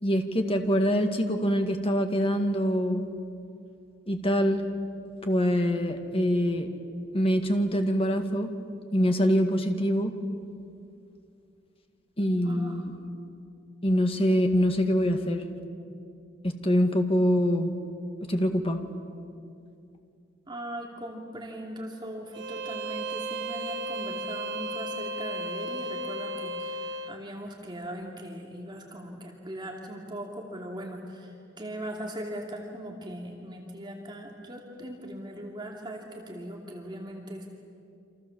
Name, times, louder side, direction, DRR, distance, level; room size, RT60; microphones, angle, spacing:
voice 1, 0.0-3.1 4.1-4.6 5.2-6.7 7.1-8.5 8.9-10.1 12.2-13.0 13.8-15.4 16.4-17.7 18.3-18.8, equal, 30° left, 5 dB, 2.1 m, -24 dB
voice 2, 12.4-12.8 20.5-37.5, right 1 dB, 25° right, 0 dB, 2.7 m, -39 dB
Bowed string instrument, 22.3-27.2, right 1 dB, 70° right, 1.1 m, -34 dB
29.0 x 26.5 x 7.3 m, 2.5 s
head